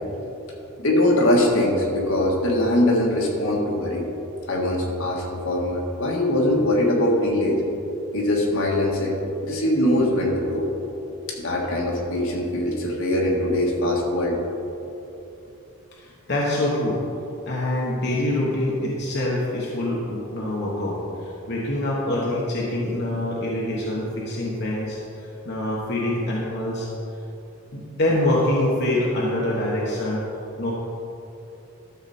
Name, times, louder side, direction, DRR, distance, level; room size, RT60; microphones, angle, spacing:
voice 1, 0.8-4.1 4.5-7.6 8.1-9.2 9.4-10.7 11.3-14.4, left 1 dB, 70° left, -1 dB, 1.8 m, -22 dB
voice 2, 16.0-17.0 17.5-26.9 27.7-30.2 30.6-30.7, left 1 dB, 55° left, -5 dB, 1.3 m, -25 dB
12.5 x 7.0 x 4.3 m, 2.9 s
head